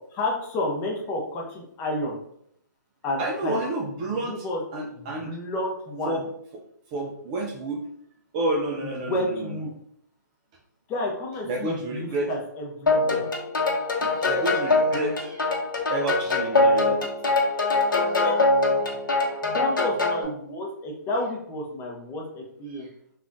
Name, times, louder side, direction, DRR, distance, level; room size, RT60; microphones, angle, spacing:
voice 1, 0.1-2.2 3.0-3.6 4.2-4.6 4.9-6.2 8.8-9.7 10.9-13.2 18.2-18.4 19.4-22.9, left 1 dB, 20° left, 0 dB, 0.6 m, -31 dB
voice 2, 3.2-4.5 4.7-5.3 6.1-6.2 6.5-6.6 6.9-7.8 8.3-9.6 11.4-12.3 14.0-15.5 15.7-17.1 17.6-17.7 22.7-22.9, right 2 dB, 25° right, 1 dB, 0.3 m, -30 dB
sound 1, 12.9-20.2, left 3 dB, 85° left, 0.8 m, -23 dB
3.4 x 2.3 x 2.5 m, 0.71 s
hypercardioid pair, 140°, 11 cm